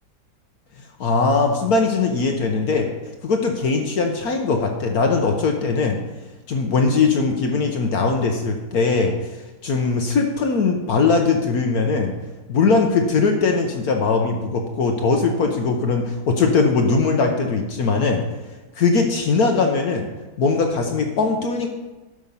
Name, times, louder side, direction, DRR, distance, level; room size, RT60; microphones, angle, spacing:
voice 1, 1.0-2.9 3.2-6.0 6.5-12.1 12.5-18.2 18.8-20.1 20.4-21.7, left 4 dB, 65° left, 3 dB, 1.3 m, -20 dB
11.5 x 6.3 x 5.4 m, 1.1 s
omnidirectional pair, 1.8 m